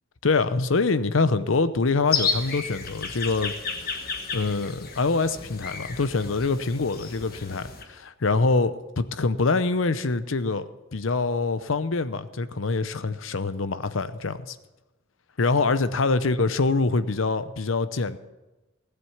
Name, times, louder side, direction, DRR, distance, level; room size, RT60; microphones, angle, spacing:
voice 1, 0.2-3.5 3.8-14.6 15.4-18.2, left 3 dB, 75° left, 13 dB, 0.7 m, -25 dB
sound 1, 2.1-7.8, left 5 dB, 45° left, 1.5 m, -32 dB
16.0 x 7.9 x 7.2 m, 1.1 s
head